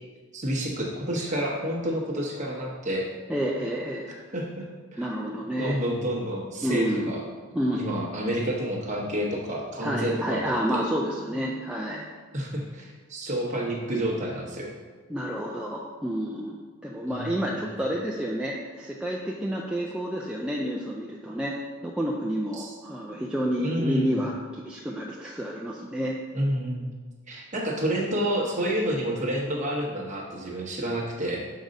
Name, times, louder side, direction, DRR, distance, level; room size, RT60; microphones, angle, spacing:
voice 1, 0.3-3.1 4.3-5.1 5.6-7.2 7.7-10.8 12.3-14.8 17.0-17.5 22.5-22.8 23.6-24.3 26.3-27.0 27.3-31.4, equal, 30° right, -2 dB, 1.1 m, -29 dB
voice 2, 3.3-4.1 5.0-5.8 6.6-7.1 7.6-8.0 9.8-12.1 15.1-21.6 21.8-26.2, equal, 5° right, -3 dB, 0.3 m, -29 dB
6.3 x 3.8 x 5.2 m, 1.4 s
head